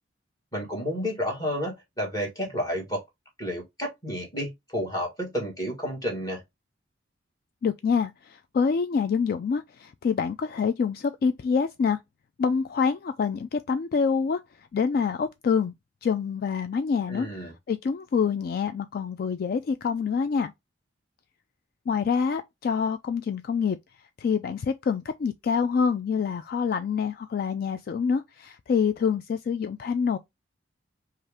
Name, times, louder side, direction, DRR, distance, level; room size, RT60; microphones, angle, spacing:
voice 1, 0.5-3.0 3.4-6.4 17.1-17.5, equal, 20° left, 1.8 m, -31 dB
voice 2, 7.6-12.0 12.4-14.4 14.7-15.7 16.0-20.5 21.9-23.8 24.2-30.2, left 6 dB, 50° left, 0.3 m, -26 dB
5.4 x 2.5 x 3.5 m
head